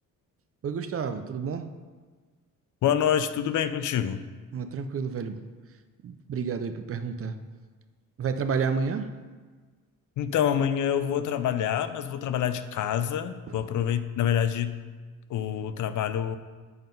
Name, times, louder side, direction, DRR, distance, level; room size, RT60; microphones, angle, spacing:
voice 1, 0.6-1.7 4.5-5.4 6.0-7.4 8.2-9.1 13.5-13.6, right 5 dB, 45° right, 9 dB, 0.5 m, -30 dB
voice 2, 2.8-4.2 10.2-14.8 15.3-16.4, left 9 dB, 65° left, 12 dB, 0.5 m, -26 dB
7.8 x 3.7 x 5.2 m, 1.4 s
cardioid pair, 100°, 33 cm